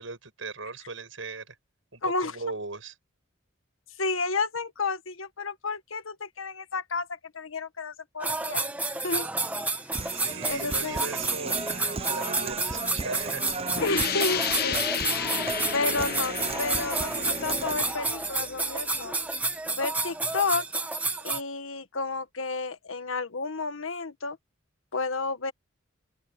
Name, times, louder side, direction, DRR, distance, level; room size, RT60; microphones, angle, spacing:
voice 1, 0.0-1.6 1.9-2.9 10.1-13.4, right 3 dB, 70° right, 6.1 m, -38 dB
voice 2, 2.0-2.3 4.0-8.7 9.0-9.3 10.0-10.2 10.4-11.0 13.8-14.8 15.7-19.1 19.7-20.6 21.2-24.4 24.9-25.5, left 3 dB, 80° left, 1.5 m, -31 dB
sound 1, 8.2-21.4, right 3 dB, 5° right, 1.2 m, -30 dB
Human voice, 9.9-17.9, right 3 dB, 30° right, 0.7 m, -36 dB
sound 2, 13.7-19.2, left 8 dB, 50° left, 0.9 m, -33 dB
open air
head